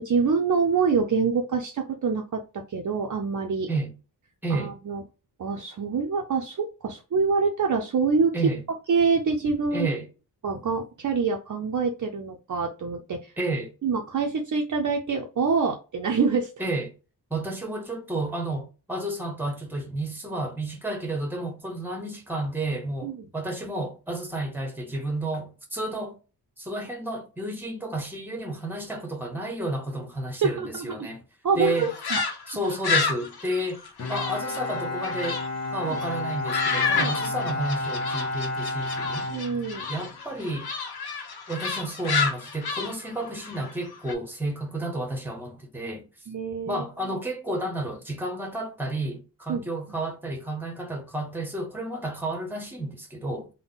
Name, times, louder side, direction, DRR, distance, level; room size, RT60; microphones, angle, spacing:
voice 1, 0.0-3.7 4.5-5.0 5.4-8.3 8.9-9.9 10.4-13.3 13.8-16.5 23.0-23.1 30.4-31.1 31.4-32.2 35.8-36.0 37.0-37.1 39.3-39.8 46.3-46.8 49.5-49.6, right 5 dB, 50° right, 0.5 m, -26 dB
voice 2, 4.4-4.7 8.3-8.6 9.7-10.0 13.4-13.7 16.6-16.9 17.3-26.2 26.6-31.2 31.6-31.9 32.5-33.8 34.1-35.4 35.7-39.3 39.9-40.7 41.5-46.1 46.7-53.5, right 2 dB, 5° right, 0.9 m, -31 dB
sound 1, 31.6-35.5 35.8-44.1, left 5 dB, 70° left, 0.8 m, -30 dB
Bowed string instrument, 34.0-40.1, left 2 dB, 40° left, 0.6 m, -31 dB
3.6 x 2.2 x 3.9 m
wide cardioid pair, 145°, 40 cm